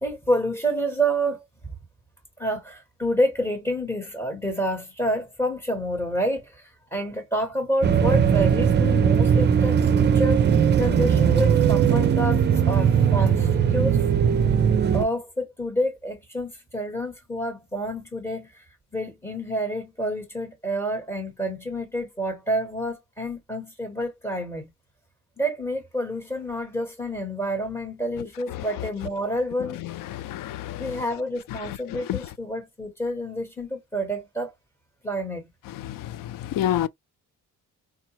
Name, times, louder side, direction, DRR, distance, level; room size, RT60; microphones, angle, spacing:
voice 1, 0.0-1.7 2.4-10.4 10.8-14.0 14.9-18.6 18.9-24.7 25.4-29.8 30.8-34.5 35.0-35.5, equal, 10° left, 1.0 m, -28 dB
sound 1, 7.8-15.0, right 7 dB, 35° right, 0.4 m, -19 dB
voice 2, 29.8-30.9 31.7-32.2 35.8-36.9, left 12 dB, 80° left, 0.5 m, -29 dB
4.8 x 2.1 x 2.8 m
wide cardioid pair, 155°, 33 cm